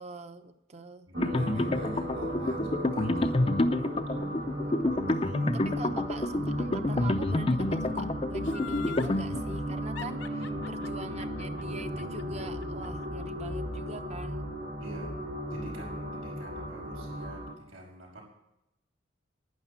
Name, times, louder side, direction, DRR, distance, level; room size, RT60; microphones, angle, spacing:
voice 1, 0.0-1.1 4.6-4.7 5.5-14.5, right 2 dB, 30° right, 8 dB, 0.8 m, -44 dB
sound 1, 1.1-17.5, equal, 65° right, 2.0 m, -36 dB
voice 2, 1.1-3.6 4.9-5.5 6.4-6.5 10.3-10.6 14.8-15.2 15.5-18.2, right 1 dB, 90° right, -1 dB, 5.7 m, -46 dB
sound 2, 1.2-9.7, left 2 dB, 30° left, 0.5 m, -29 dB
Laughter, 8.4-9.2 10.0-13.1 13.4-13.5, left 7 dB, 65° left, 0.7 m, -43 dB
11.5 x 9.9 x 7.2 m, 0.86 s
head